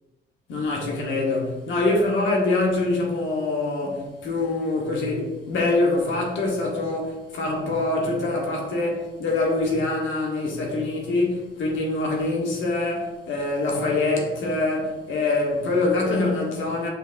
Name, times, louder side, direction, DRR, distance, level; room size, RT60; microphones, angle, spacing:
voice 1, 0.5-16.9, left 2 dB, 75° left, 1.3 m, -24 dB
6.2 x 3.4 x 2.5 m
cardioid pair, 90°, 20 cm